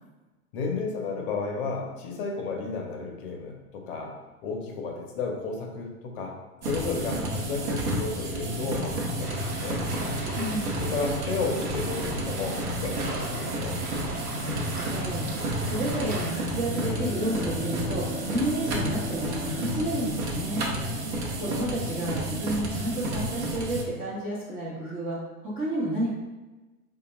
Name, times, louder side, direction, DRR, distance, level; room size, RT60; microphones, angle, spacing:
voice 1, 0.5-4.2 4.4-6.4 6.6-9.8 10.8-13.8, left 4 dB, 40° left, 1 dB, 0.7 m, -32 dB
sound 1, 6.6-23.8, right 1 dB, 50° right, 0.8 m, -31 dB
sound 2, 9.2-16.3, right 1 dB, 90° right, 0.9 m, -37 dB
voice 2, 10.4-10.9 14.4-20.7 21.4-26.1, right 1 dB, 15° right, -7 dB, 0.4 m, -31 dB
Bowed string instrument, 16.5-21.6, left 1 dB, 90° left, 0.5 m, -39 dB
4.8 x 2.3 x 2.9 m, 1.2 s
figure-of-eight pair, 100°, 44 cm